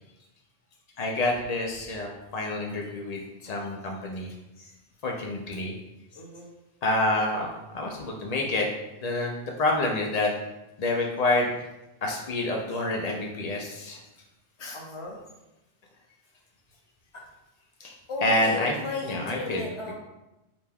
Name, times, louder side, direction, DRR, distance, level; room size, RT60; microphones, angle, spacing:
voice 1, 1.0-4.3 5.0-5.7 6.8-7.5 7.7-8.7 9.0-9.3 9.6-10.3 10.8-11.5 12.0-14.0 14.6-14.8 17.8-17.9 18.2-18.7 19.1-19.6, left 2 dB, 80° left, 0 dB, 0.3 m, -27 dB
voice 2, 6.1-6.5 14.7-15.2 17.1-17.2 18.1-19.9, left 2 dB, 30° left, -2 dB, 0.6 m, -35 dB
4.9 x 2.2 x 3.4 m, 0.97 s
omnidirectional pair, 1.3 m